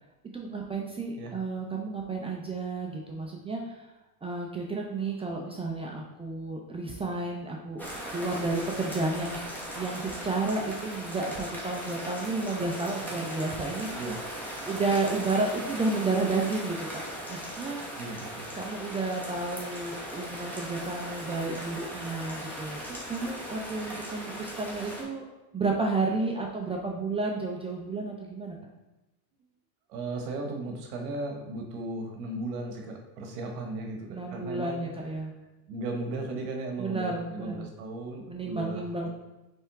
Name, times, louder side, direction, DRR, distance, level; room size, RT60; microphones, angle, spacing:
voice 1, 0.3-3.9 4.2-13.9 14.7-17.0 17.3-17.8 18.6-25.3 25.5-28.6 34.1-35.3 36.8-37.7 38.3-39.1, right 3 dB, 15° right, -1 dB, 0.4 m, -31 dB
sound 1, 7.8-25.0, equal, 5° left, 1.1 m, -38 dB
voice 2, 18.0-18.5 29.9-34.8 35.7-39.1, right 2 dB, 70° right, 2 dB, 1.0 m, -36 dB
4.3 x 3.4 x 3.5 m, 1.0 s
supercardioid pair, 105°, 46 cm